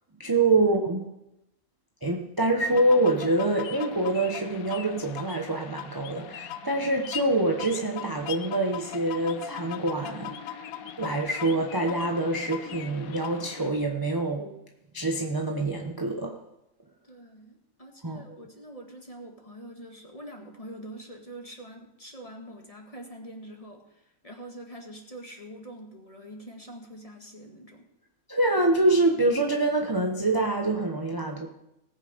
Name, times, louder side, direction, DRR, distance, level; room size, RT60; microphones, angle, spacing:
voice 1, 0.2-1.0 2.0-10.7 11.0-14.5 14.9-16.4 18.0-18.2 28.3-31.5, right 2 dB, 15° right, 2 dB, 0.9 m, -25 dB
sound 1, 2.6-13.7, left 9 dB, 80° left, 1.2 m, -40 dB
voice 2, 17.0-27.9, right 1 dB, 25° left, 1 dB, 1.8 m, -44 dB
18.5 x 7.8 x 5.2 m, 0.87 s
omnidirectional pair, 1.5 m